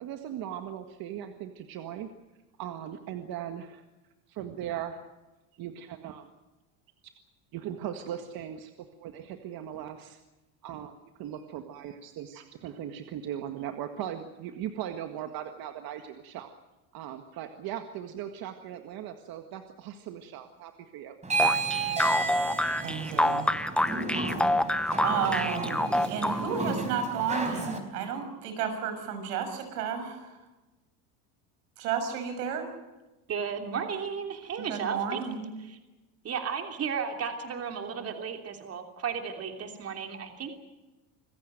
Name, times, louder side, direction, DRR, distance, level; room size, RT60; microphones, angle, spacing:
voice 1, 0.0-2.1 2.6-3.8 4.3-5.0 5.5-6.3 7.5-8.7 9.0-10.2 10.6-10.9 11.2-16.5 16.9-21.2, right 10 dB, 50° right, 6 dB, 1.9 m, -38 dB
sound 1, 21.2-27.8, right 3 dB, 15° right, 4.2 m, -32 dB
sound 2, 21.4-26.7, left 1 dB, ahead, 0.9 m, -27 dB
voice 2, 22.8-23.5 25.0-30.4 31.8-32.7 34.6-35.5, right 7 dB, 90° right, 7 dB, 6.3 m, -32 dB
voice 3, 33.3-35.2 35.6-35.8 36.2-40.5, right 6 dB, 30° right, 4 dB, 3.1 m, -34 dB
26.5 x 15.5 x 9.2 m, 1.1 s
supercardioid pair, 130°, 45 cm